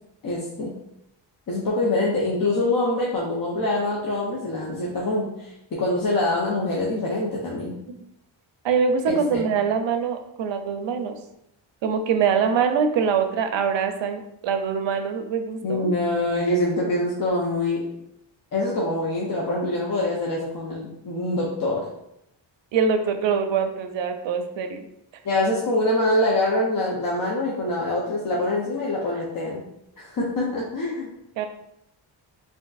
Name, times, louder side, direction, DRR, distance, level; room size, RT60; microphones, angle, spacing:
voice 1, 0.2-0.7 1.5-7.8 9.1-9.4 15.6-17.8 18.5-21.9 25.2-29.6 30.0-31.1, left 2 dB, 45° left, -4 dB, 0.6 m, -25 dB
voice 2, 8.6-11.2 11.8-15.9 22.7-24.9 31.4-31.5, right 6 dB, 70° right, 6 dB, 0.5 m, -24 dB
3.4 x 2.6 x 2.3 m, 0.79 s
wide cardioid pair, 125°, 47 cm